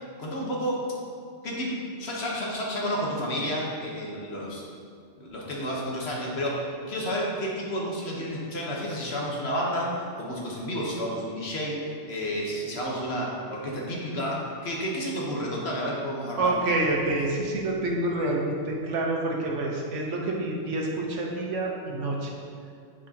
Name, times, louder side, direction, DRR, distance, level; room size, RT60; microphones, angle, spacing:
voice 1, 0.2-0.9 1.4-4.6 5.2-16.6, equal, 60° left, -3 dB, 1.3 m, -31 dB
voice 2, 16.4-22.3, right 2 dB, 75° right, -1 dB, 1.2 m, -27 dB
8.5 x 4.9 x 2.8 m, 2.3 s
omnidirectional pair, 1.3 m